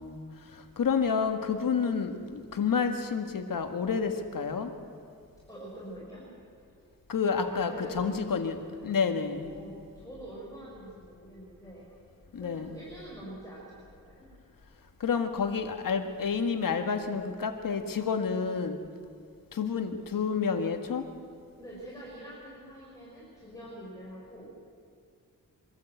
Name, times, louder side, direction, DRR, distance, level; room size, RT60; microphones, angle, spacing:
voice 1, 0.0-4.7 7.1-8.6 8.8-9.5 12.3-12.7 15.0-18.8 19.5-21.1, left 6 dB, 75° left, 7 dB, 1.7 m, -29 dB
voice 2, 5.5-6.2 7.5-8.3 8.6-8.8 9.3-11.9 12.4-13.7 14.0-14.3 21.6-24.5, right 1 dB, 10° left, -7 dB, 5.8 m, -45 dB
24.0 x 13.5 x 8.1 m, 2.2 s
wide cardioid pair, 100°, 34 cm